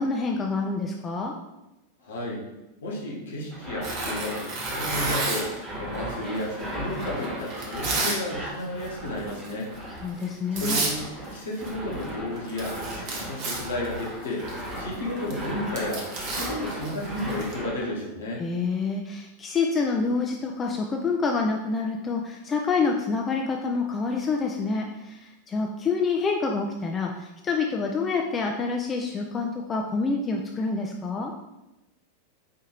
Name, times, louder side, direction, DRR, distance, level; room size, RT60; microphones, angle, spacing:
voice 1, 0.0-1.3 10.0-10.8 18.4-31.3, left 4 dB, 20° left, 1 dB, 0.4 m, -27 dB
voice 2, 2.0-2.4 2.8-9.7 10.1-10.2 10.5-16.1 16.3-18.4, left 1 dB, 65° left, -4 dB, 1.2 m, -32 dB
sound 1, 3.5-17.9, equal, 20° right, 1.2 m, -37 dB
Tearing, 3.8-5.6 6.3-8.2 8.5-8.9 9.3-9.5 10.2-10.3 10.6-11.0 11.2-12.1 12.4-17.5, right 3 dB, 40° right, 0.9 m, -31 dB
4.9 x 2.7 x 3.0 m, 0.96 s
figure-of-eight pair, 90°, 0 cm